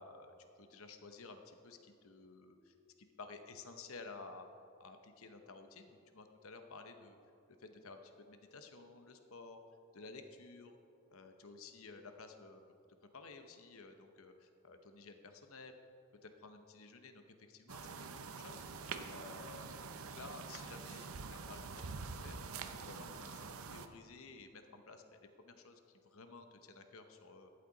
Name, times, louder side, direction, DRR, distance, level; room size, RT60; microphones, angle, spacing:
voice 1, 0.0-2.7 3.2-4.5 4.8-7.2 7.6-9.6 9.9-10.8 11.1-12.6 13.1-15.8 16.2-17.2 17.5-18.7 19.1-22.4 22.8-23.4 23.7-25.2 25.4-27.5, left 3 dB, 65° left, 7 dB, 0.9 m, -53 dB
sound 1, 17.7-23.9, right 5 dB, 65° right, 0.6 m, -46 dB
12.0 x 8.7 x 4.0 m, 2.6 s
head